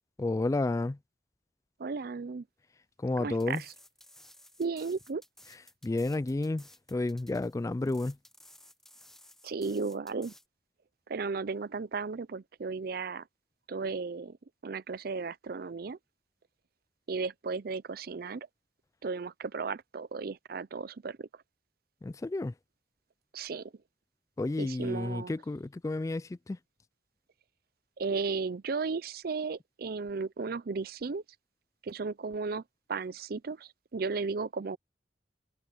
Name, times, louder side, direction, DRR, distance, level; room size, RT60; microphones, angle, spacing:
voice 1, 0.2-1.0 3.0-3.6 5.8-8.2 22.0-22.5 24.4-26.6, left 2 dB, 20° left, 0.3 m, -31 dB
voice 2, 1.8-2.5 3.2-3.7 4.6-5.2 9.4-10.3 11.1-13.2 13.7-14.4 14.6-16.0 17.1-18.5 19.0-21.3 23.3-23.7 24.6-25.3 28.0-31.2 31.8-32.6 32.9-34.8, right 4 dB, 60° right, 0.5 m, -35 dB
sound 1, 3.3-10.5, left 1 dB, 5° left, 0.9 m, -56 dB
head